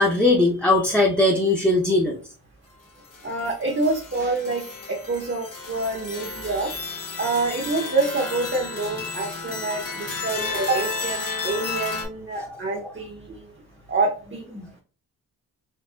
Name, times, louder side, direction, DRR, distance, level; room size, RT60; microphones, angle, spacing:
voice 1, 0.0-2.2 12.3-12.6 14.6-14.8, left 2 dB, 5° left, -2 dB, 0.7 m, -20 dB
sound 1, 3.1-12.1, left 4 dB, 50° left, 1.6 m, -33 dB
voice 2, 3.2-4.6 4.9-6.7 7.2-13.5 13.9-14.5, right 3 dB, 30° right, 0 dB, 0.8 m, -27 dB
4.5 x 2.5 x 2.4 m, 0.37 s
cardioid pair, 80°, 40 cm